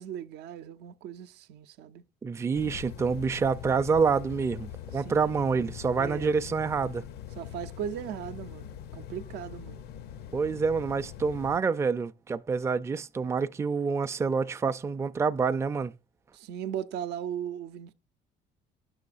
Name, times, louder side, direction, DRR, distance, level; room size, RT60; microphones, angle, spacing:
voice 1, 0.0-2.0 4.9-5.4 6.0-6.3 7.4-9.9 16.3-17.9, right 9 dB, 80° right, 0.6 m, -38 dB
voice 2, 2.2-7.0 10.3-15.9, right 5 dB, 15° right, 0.4 m, -27 dB
sound 1, 2.5-11.6, left 10 dB, 70° left, 0.6 m, -43 dB
10.5 x 6.4 x 2.5 m
cardioid pair, 110°, 17 cm